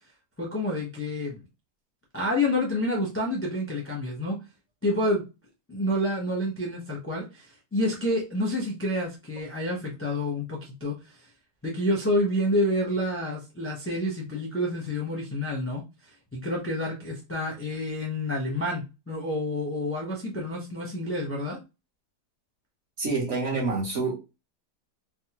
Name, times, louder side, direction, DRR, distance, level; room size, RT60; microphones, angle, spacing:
voice 1, 0.4-1.4 2.1-4.4 4.8-5.2 5.7-7.5 7.7-10.9 11.6-15.8 16.3-21.6, left 1 dB, 15° left, 0.4 m, -28 dB
voice 2, 23.0-24.1, right 3 dB, 50° right, 1.1 m, -27 dB
3.4 x 2.1 x 2.9 m
omnidirectional pair, 1.8 m